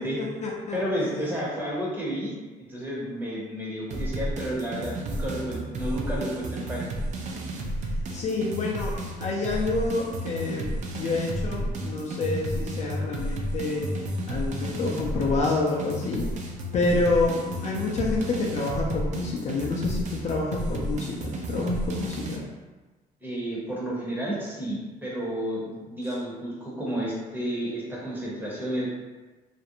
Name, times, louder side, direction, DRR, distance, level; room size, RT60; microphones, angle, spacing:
voice 1, 0.0-1.3 7.8-13.9 14.3-22.4, left 3 dB, 40° left, -2 dB, 0.4 m, -28 dB
voice 2, 0.7-2.3 2.7-6.8 23.2-28.9, equal, 10° right, -5 dB, 0.7 m, -31 dB
sound 1, 3.9-22.4, right 1 dB, 45° right, 0.4 m, -32 dB
2.4 x 2.0 x 2.8 m, 1.2 s
cardioid pair, 110°, 17 cm